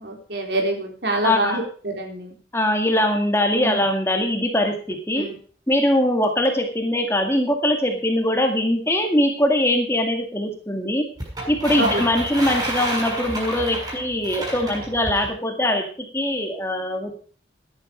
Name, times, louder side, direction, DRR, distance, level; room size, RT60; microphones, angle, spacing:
voice 1, 0.0-1.6 2.0-2.2 3.6-3.8 5.2-5.3 11.8-12.0, right 1 dB, 70° right, 2 dB, 3.8 m, -25 dB
voice 2, 1.2-1.6 2.5-5.3 5.7-11.1 11.5-17.3, left 1 dB, 15° left, 3 dB, 1.9 m, -22 dB
sound 1, 11.2-15.3, right 1 dB, 25° right, 6.6 m, -30 dB
14.0 x 10.5 x 5.1 m, 0.43 s
head